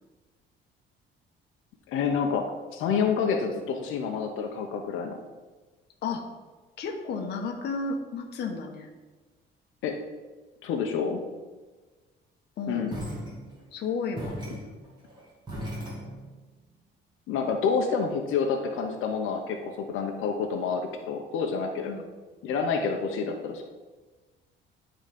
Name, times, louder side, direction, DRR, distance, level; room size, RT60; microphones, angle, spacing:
voice 1, 1.9-5.2 9.8-10.0 10.6-11.2 12.7-13.0 17.3-21.9 22.4-23.6, left 5 dB, 85° left, 3 dB, 1.0 m, -28 dB
voice 2, 6.8-8.9 12.6-12.9 13.7-14.3 21.8-22.1, left 4 dB, 55° left, 3 dB, 1.1 m, -32 dB
sound 1, 12.9-13.8 14.2-16.5, equal, 20° right, 2.4 m, -38 dB
11.0 x 4.0 x 5.2 m, 1.3 s
cardioid pair, 160°, 20 cm